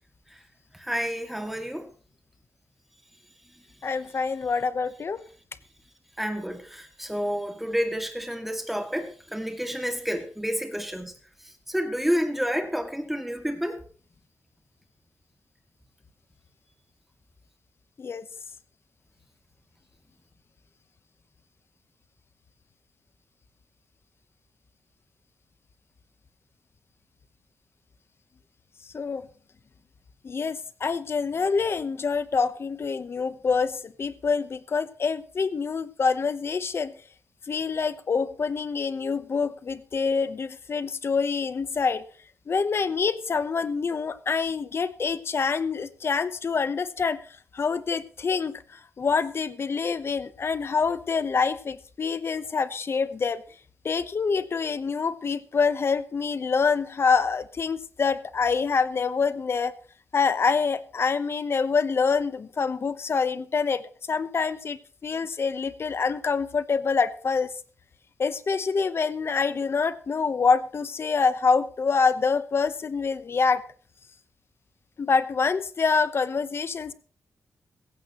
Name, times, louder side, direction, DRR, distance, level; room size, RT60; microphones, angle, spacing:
voice 1, 0.7-1.9 6.2-11.1 11.7-13.8, equal, 5° right, 2.2 m, -29 dB
voice 2, 3.8-5.2 18.0-18.3 28.9-29.3 30.2-36.9 37.5-42.1 42.5-47.2 47.5-53.4 53.8-59.7 60.1-67.5 68.2-73.6 75.0-76.9, left 5 dB, 45° left, 0.9 m, -26 dB
16.0 x 15.5 x 3.0 m
wide cardioid pair, 110°, 6 cm